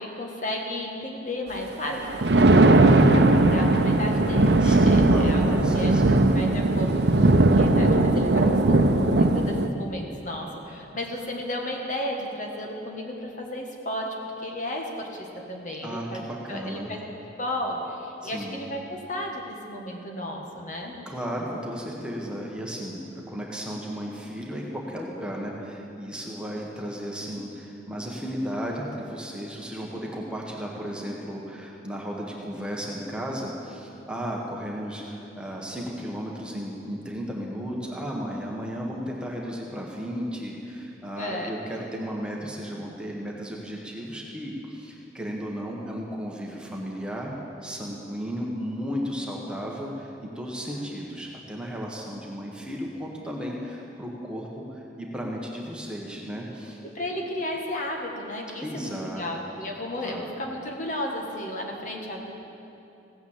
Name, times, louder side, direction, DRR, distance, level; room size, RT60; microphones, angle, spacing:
voice 1, 0.0-2.5 2.9-5.4 5.7-5.9 6.3-14.1 14.4-16.2 16.5-17.0 17.4-20.9 41.2-41.9 50.8-50.9 56.9-62.3, left 1 dB, 45° left, 0 dB, 1.6 m, -33 dB
Thunder, 1.9-9.7, right 2 dB, 65° right, 0.7 m, -19 dB
voice 2, 4.6-6.2 15.8-16.9 18.2-18.6 21.0-23.0 23.3-47.3 47.6-56.8 58.6-59.2 60.0-60.3, equal, 5° right, -2 dB, 1.4 m, -34 dB
16.0 x 9.4 x 7.4 m, 2.8 s
head